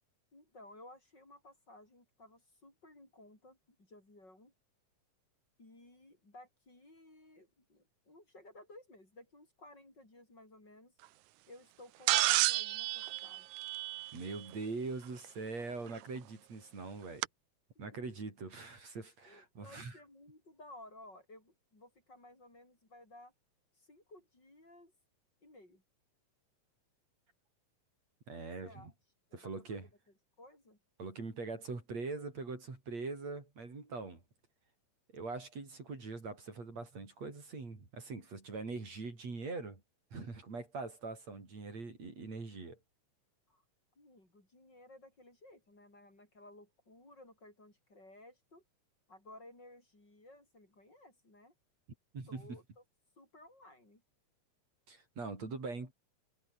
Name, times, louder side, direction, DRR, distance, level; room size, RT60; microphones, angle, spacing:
voice 1, 0.3-4.5 5.6-10.9 11.5-13.7 17.7-17.9 19.3-23.3 23.7-24.9 25.4-25.8 28.3-28.9 29.3-29.8 30.4-30.8 43.5-43.6 44.0-48.6 49.1-51.5 52.3-52.6 53.2-54.0, left 1 dB, 30° left, 7.9 m, -57 dB
sound 1, 12.1-14.4 16.0-16.1 17.2-17.3, right 17 dB, 80° right, 2.0 m, -31 dB
voice 2, 14.1-17.3 17.8-20.0 28.3-28.9 29.3-29.9 31.0-34.2 35.1-39.8 40.1-42.8 52.1-52.6 54.9-55.9, right 3 dB, 55° right, 6.7 m, -42 dB
omnidirectional pair, 3.6 m